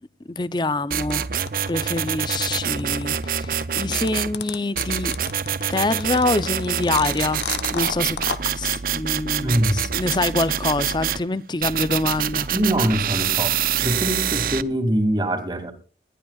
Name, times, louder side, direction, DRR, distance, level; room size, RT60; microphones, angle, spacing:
voice 1, 0.3-1.3 1.7-3.5 3.8-5.1 5.7-7.4 7.7-8.2 8.6-12.5, left 2 dB, 25° left, 0.6 m, -25 dB
sound 1, 0.9-4.3 4.8-11.2 11.6-14.6, right 9 dB, 50° right, 0.5 m, -26 dB
sound 2, 1.1-8.5, left 6 dB, 80° left, 1.1 m, -32 dB
voice 2, 9.4-10.0 12.5-13.6 13.8-15.7, right 1 dB, 25° right, 2.4 m, -23 dB
21.0 x 13.0 x 2.4 m
head